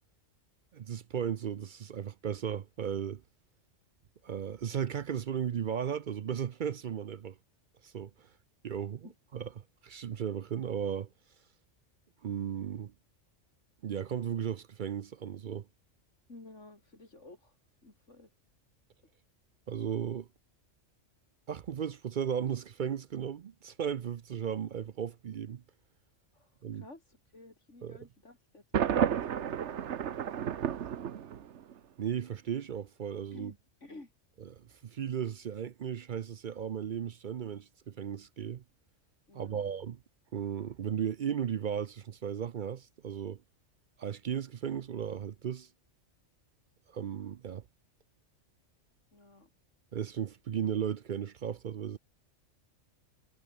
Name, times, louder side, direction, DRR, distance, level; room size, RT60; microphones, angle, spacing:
voice 1, 0.7-3.2 4.2-7.4 7.8-8.3 8.6-11.1 12.2-12.9 13.8-15.7 19.7-20.3 21.5-25.6 26.6-26.8 27.8-28.0 32.0-33.5 34.4-38.6 39.3-40.0 40.3-43.4 44.0-45.7 46.9-47.6 49.9-52.0, right 8 dB, 55° right, 0.6 m, -35 dB
voice 2, 16.3-17.5 17.8-18.3 26.3-30.8 33.3-34.1 39.3-39.7 49.1-49.5, left 2 dB, 75° left, 5.0 m, -53 dB
Thunder, 28.7-31.7, right 9 dB, 70° right, 1.2 m, -31 dB
omnidirectional pair, 1.3 m